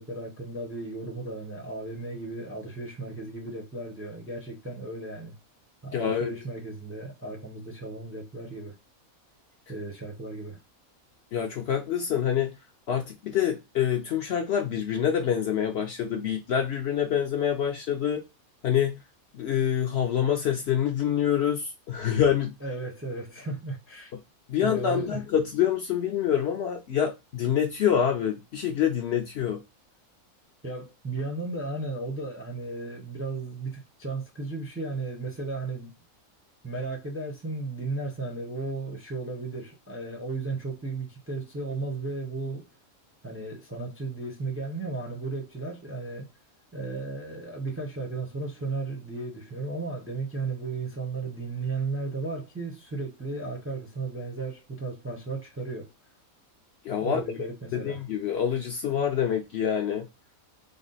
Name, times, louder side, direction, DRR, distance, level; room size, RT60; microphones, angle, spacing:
voice 1, 0.0-5.3 5.8-8.7 9.7-10.6 22.6-24.1 24.6-25.2 30.6-35.9 36.6-42.7 43.2-46.3 46.7-55.9 57.0-58.0, right 3 dB, 15° right, 0.5 m, -35 dB
voice 2, 5.9-6.3 11.3-12.5 12.9-18.2 18.6-19.0 19.3-22.5 24.5-29.6 56.8-57.2 57.7-60.0, left 9 dB, 60° left, 0.7 m, -26 dB
3.6 x 2.0 x 3.8 m
omnidirectional pair, 1.5 m